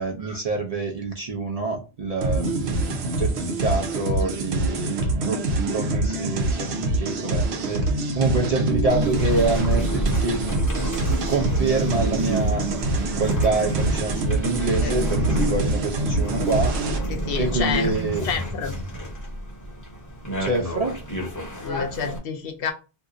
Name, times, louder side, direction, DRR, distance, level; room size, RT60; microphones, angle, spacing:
voice 1, 0.0-2.5 3.2-10.6 11.3-12.6 13.2-16.7 17.4-18.3 20.4-21.0, right 3 dB, 45° right, 1 dB, 0.5 m, -26 dB
sound 1, 2.2-17.0, right 2 dB, 80° right, 0.9 m, -25 dB
sound 2, 8.9-22.2, right 1 dB, 20° left, 0.8 m, -29 dB
voice 2, 17.1-17.9 18.2-18.7 21.6-22.7, left 6 dB, 70° left, 5 dB, 0.7 m, -29 dB
2.7 x 2.4 x 3.7 m, 0.32 s
omnidirectional pair, 1.1 m